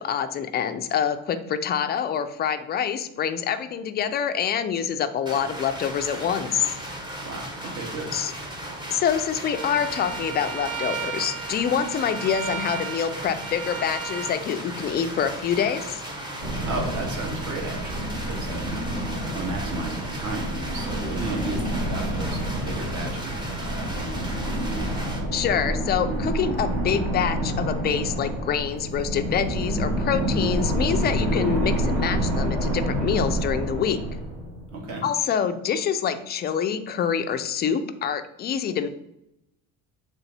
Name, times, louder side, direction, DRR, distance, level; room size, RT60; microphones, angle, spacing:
voice 1, 0.0-6.7 8.1-8.3 8.9-16.0 25.3-34.0 35.0-38.9, left 8 dB, 30° left, 9 dB, 0.4 m, -26 dB
sound 1, 5.3-25.2, right 1 dB, 10° right, 0.8 m, -36 dB
voice 2, 7.2-8.1 16.7-24.2 34.7-35.0, right 2 dB, 55° right, 0 dB, 1.8 m, -34 dB
Bowed string instrument, 9.4-14.3, right 7 dB, 75° right, 1.9 m, -35 dB
sound 2, 16.4-34.8, right 1 dB, 40° right, 2.4 m, -28 dB
7.1 x 3.6 x 4.0 m, 0.86 s
cardioid pair, 180°, 35 cm